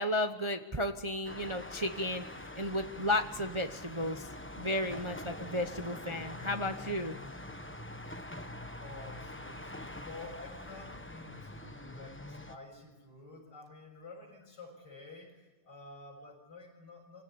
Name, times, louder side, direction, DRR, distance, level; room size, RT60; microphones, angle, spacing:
voice 1, 0.0-2.2 2.6-4.3 4.6-7.1, left 1 dB, 35° right, 7 dB, 0.4 m, -33 dB
sound 1, 1.2-12.6, left 1 dB, 10° left, 0.6 m, -45 dB
voice 2, 8.8-17.2, left 3 dB, 50° left, -4 dB, 7.0 m, -50 dB
24.5 x 17.0 x 9.8 m, 1.1 s
omnidirectional pair, 2.3 m